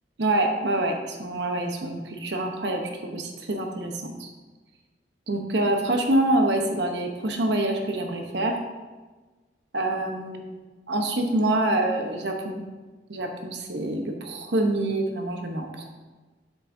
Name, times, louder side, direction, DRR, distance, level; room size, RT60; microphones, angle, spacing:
voice 1, 0.2-4.3 5.3-8.6 9.7-10.6 10.9-12.6 13.1-15.9, right 1 dB, 75° right, 3 dB, 1.0 m, -26 dB
7.8 x 7.3 x 2.7 m, 1.3 s
head